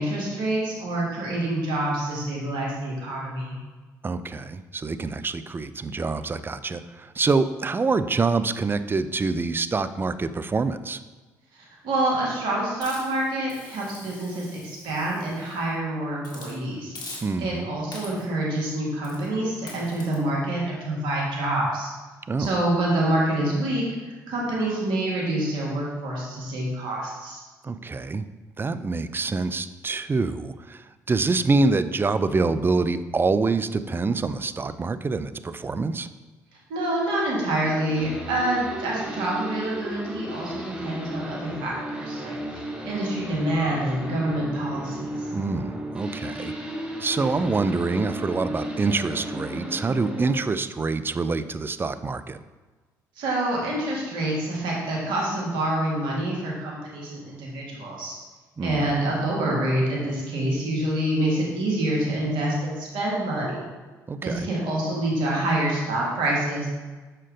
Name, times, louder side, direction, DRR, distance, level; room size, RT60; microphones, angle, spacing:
voice 1, 0.0-3.6 11.8-16.9 17.4-21.9 22.4-23.8 24.3-27.4 36.7-45.3 53.2-58.1 58.6-63.7 64.2-66.7, right 1 dB, 70° right, -3 dB, 1.9 m, -27 dB
voice 2, 4.0-11.0 17.2-17.7 22.3-22.5 27.6-28.2 28.6-36.1 45.3-46.5 47.0-52.4 58.6-58.9 64.1-64.5, right 3 dB, 25° right, 13 dB, 0.4 m, -26 dB
Hiss, 12.8-15.7 16.2-16.5 16.9-17.6 17.9-18.4 19.0-19.3 19.7-20.1, left 2 dB, 55° left, 1.8 m, -43 dB
sound 1, 37.4-50.3, equal, 10° right, 1.2 m, -34 dB
6.0 x 4.4 x 3.9 m, 1.3 s
hypercardioid pair, 50°, 9 cm